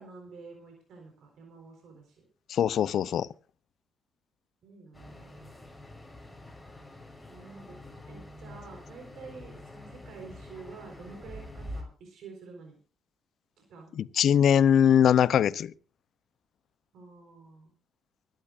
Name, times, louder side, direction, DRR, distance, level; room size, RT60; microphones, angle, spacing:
voice 1, 0.0-2.2 4.6-5.5 7.3-12.8 13.7-14.0 16.9-17.7, right 4 dB, 75° right, 4.0 m, -48 dB
voice 2, 2.5-3.3 13.9-15.7, left 9 dB, 65° left, 0.6 m, -22 dB
sound 1, 4.9-11.8, left 1 dB, 5° left, 5.2 m, -46 dB
24.5 x 12.0 x 2.5 m
cardioid pair, 90°, 0 cm